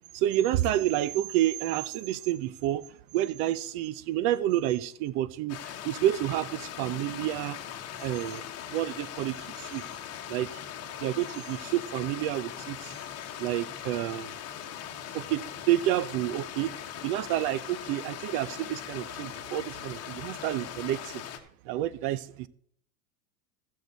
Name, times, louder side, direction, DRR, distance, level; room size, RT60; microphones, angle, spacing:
voice 1, 0.1-2.8 3.1-5.6 5.8-7.6 8.0-9.8 10.3-10.6 11.0-12.9 13.4-14.3 15.1-16.7 17.0-21.2 21.7-22.5, right 13 dB, 50° right, 0.7 m, -29 dB
Stream, 5.5-21.4, left 10 dB, 35° left, 1.2 m, -40 dB
14.5 x 6.6 x 4.0 m
hypercardioid pair, 105°, 45 cm